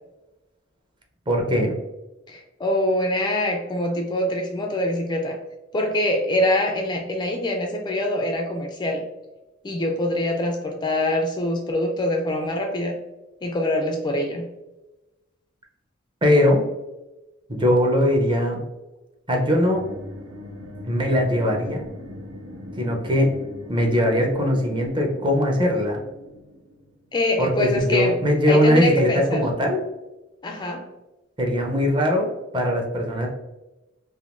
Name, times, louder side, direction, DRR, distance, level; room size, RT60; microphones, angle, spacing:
voice 1, 1.3-1.8 16.2-16.6 17.5-18.6 19.3-19.9 20.8-21.9 22.8-23.4 23.7-26.0 27.4-29.8 31.4-32.3 32.5-33.3, left 1 dB, 25° right, 1 dB, 0.6 m, -20 dB
voice 2, 2.3-5.4 5.7-9.0 9.6-13.0 13.4-14.5 27.1-28.2 28.5-29.5 30.4-30.8, left 1 dB, 20° left, 2 dB, 0.3 m, -24 dB
sound 1, 19.7-27.2, left 1 dB, 75° right, 0.7 m, -40 dB
3.5 x 2.6 x 2.5 m, 1.1 s
head